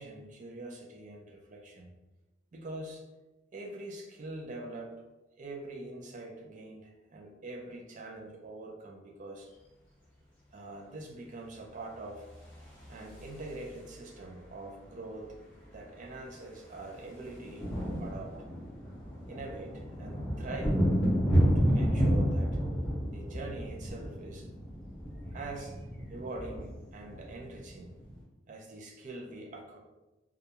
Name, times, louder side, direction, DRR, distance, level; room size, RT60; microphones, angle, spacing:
voice 1, 0.0-1.9 2.5-3.0 3.5-5.0 5.4-9.5 10.5-12.3 12.9-15.4 15.7-18.4 19.3-20.8 21.5-22.6 23.1-24.5 25.3-25.8 26.1-28.0 28.5-29.8, right 2 dB, 40° right, 1 dB, 0.4 m, -44 dB
sound 1, 12.4-14.0 15.3-15.4 15.6-15.8 16.1-28.2, equal, 10° left, 0.9 m, -31 dB
2.3 x 2.2 x 2.8 m, 1.1 s
head